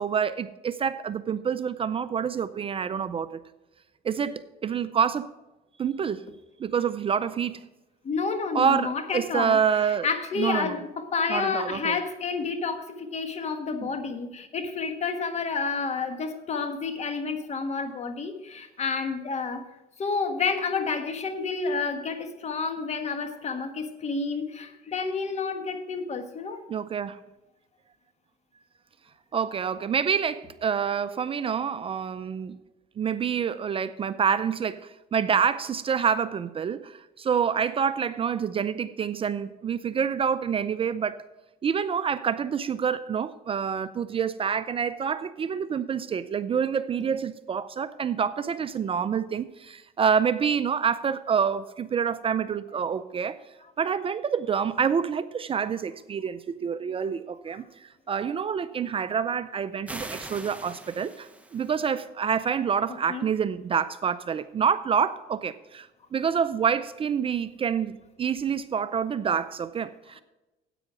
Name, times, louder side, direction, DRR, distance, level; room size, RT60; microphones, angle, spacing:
voice 1, 0.0-3.4 4.0-5.3 5.8-6.3 6.6-7.6 8.5-10.1 10.4-10.8 11.3-12.0 13.8-13.9 26.7-27.2 29.3-32.6 33.0-41.2 41.6-53.4 53.8-70.2, right 7 dB, 35° right, 13 dB, 0.5 m, -27 dB
voice 2, 8.0-9.6 10.0-19.6 20.0-26.6 63.1-63.2, left 4 dB, 40° left, 8 dB, 1.4 m, -30 dB
sound 1, 59.9-61.9, right 2 dB, 10° right, 1.0 m, -41 dB
10.0 x 8.4 x 5.0 m, 1.0 s
cardioid pair, 110°, 17 cm